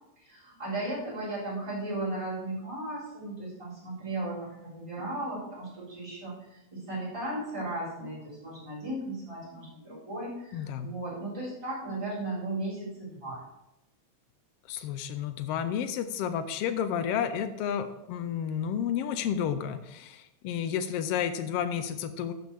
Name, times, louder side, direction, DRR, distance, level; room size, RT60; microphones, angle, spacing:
voice 1, 0.2-13.4, right 2 dB, 10° right, -8 dB, 3.6 m, -36 dB
voice 2, 10.5-11.0 14.7-22.3, left 8 dB, 85° left, 10 dB, 1.3 m, -31 dB
12.0 x 6.9 x 3.3 m, 0.89 s
omnidirectional pair, 3.3 m